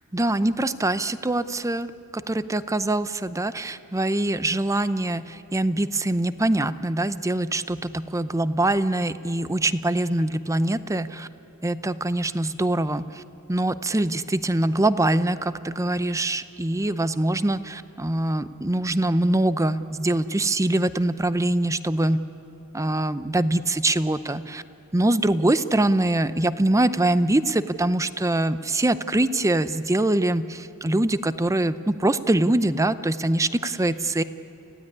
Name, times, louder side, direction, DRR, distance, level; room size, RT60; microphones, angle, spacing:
voice 1, 0.1-11.3 11.6-13.2 13.5-22.3 22.7-24.6 24.9-34.2, right 1 dB, 15° right, 14 dB, 0.6 m, -23 dB
29.5 x 16.0 x 9.8 m, 2.8 s
head